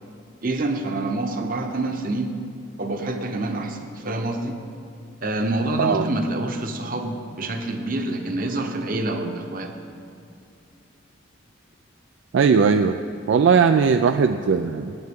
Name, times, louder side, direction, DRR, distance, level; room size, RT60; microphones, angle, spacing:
voice 1, 0.4-2.3 2.8-4.6 5.2-9.7, right 2 dB, 45° right, 5 dB, 0.9 m, -27 dB
voice 2, 12.3-13.0 13.3-15.0, right 6 dB, 70° right, 8 dB, 0.3 m, -18 dB
16.0 x 9.2 x 3.6 m, 2.6 s
head